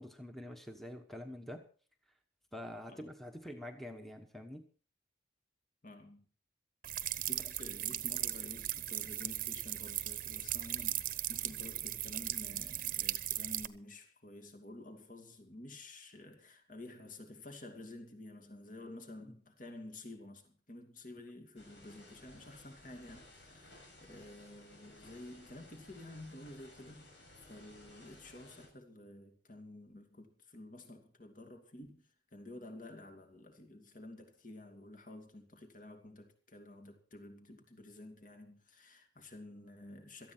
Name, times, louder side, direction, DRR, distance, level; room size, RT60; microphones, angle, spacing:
voice 1, 0.0-1.6 2.5-4.6, left 1 dB, ahead, 1.2 m, -46 dB
voice 2, 5.8-6.2 7.2-32.1 32.3-40.3, left 1 dB, 45° left, 2.6 m, -51 dB
sound 1, 6.8-13.7, right 13 dB, 50° right, 0.9 m, -37 dB
sound 2, 21.6-28.7, left 1 dB, 90° left, 7.2 m, -58 dB
18.0 x 13.5 x 4.5 m
head